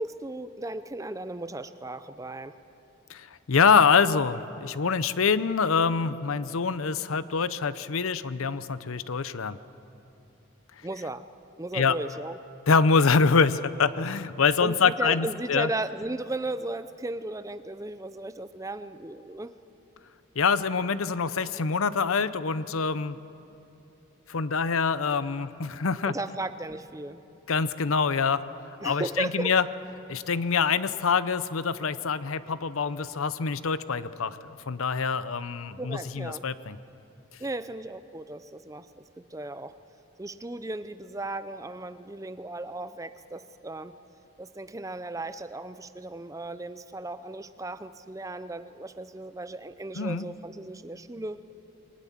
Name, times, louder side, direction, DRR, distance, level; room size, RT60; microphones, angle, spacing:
voice 1, 0.0-2.5 10.8-11.3 11.6-12.4 14.6-19.5 26.0-27.2 28.8-29.5 35.8-36.4 37.4-39.7 40.2-44.0 44.4-51.4, right 2 dB, 15° right, 12 dB, 0.5 m, -36 dB
voice 2, 3.1-9.6 11.7-12.0 12.7-15.7 20.4-23.2 24.3-26.1 27.5-28.4 28.8-29.6 30.1-36.8 50.0-50.3, left 5 dB, 75° left, 15 dB, 0.7 m, -25 dB
22.0 x 19.5 x 7.4 m, 2.9 s
head